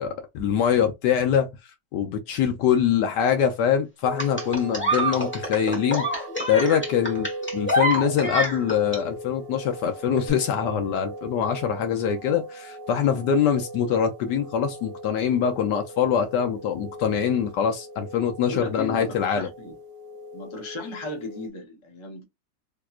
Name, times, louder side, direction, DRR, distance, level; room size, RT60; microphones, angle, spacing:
voice 1, 0.0-1.5 1.9-7.3 7.5-19.5, left 8 dB, 70° left, 1.1 m, -24 dB
sound 1, 4.0-21.5, equal, 85° right, 0.5 m, -39 dB
sound 2, 4.2-9.0 10.2-10.3, right 1 dB, 10° left, 1.0 m, -26 dB
voice 2, 18.5-19.7 20.3-22.2, left 2 dB, 30° left, 0.5 m, -35 dB
3.5 x 2.8 x 2.3 m
omnidirectional pair, 2.1 m